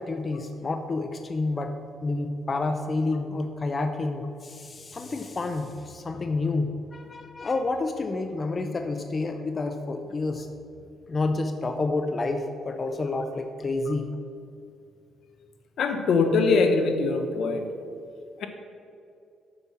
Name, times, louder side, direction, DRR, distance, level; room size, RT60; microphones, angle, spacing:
voice 1, 0.0-1.8 2.0-10.5 11.1-14.1, left 3 dB, 35° left, 6 dB, 0.5 m, -29 dB
voice 2, 15.8-17.7 18.4-18.5, left 4 dB, 70° left, 7 dB, 0.9 m, -22 dB
6.8 x 5.5 x 7.1 m, 2.6 s
cardioid pair, 90°, 0 cm